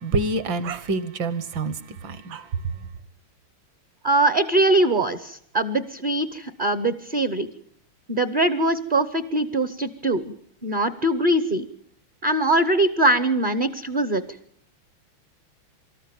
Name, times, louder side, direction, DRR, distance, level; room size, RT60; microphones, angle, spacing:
voice 1, 0.0-2.7, right 3 dB, 65° right, 1.9 m, -27 dB
voice 2, 4.0-7.5 8.1-10.2 10.6-11.7 12.2-14.2, right 1 dB, 40° right, 0.7 m, -22 dB
25.5 x 13.5 x 8.9 m
omnidirectional pair, 2.3 m